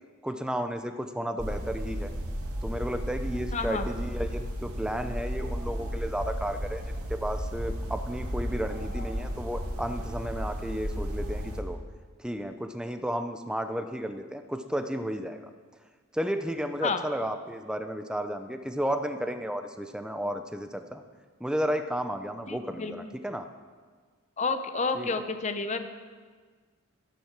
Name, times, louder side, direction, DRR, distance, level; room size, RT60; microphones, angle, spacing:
voice 1, 0.2-2.1 2.6-6.8 7.1-11.8 12.2-15.4 16.1-21.0 21.4-23.5 24.9-25.1, equal, 5° right, 7 dB, 0.6 m, -33 dB
sound 1, 1.4-11.6, equal, 80° right, 2.0 m, -34 dB
voice 2, 3.5-3.9 16.8-17.0 22.5-23.1 24.4-25.9, left 4 dB, 30° left, 9 dB, 0.7 m, -30 dB
12.5 x 11.0 x 6.0 m, 1.5 s
head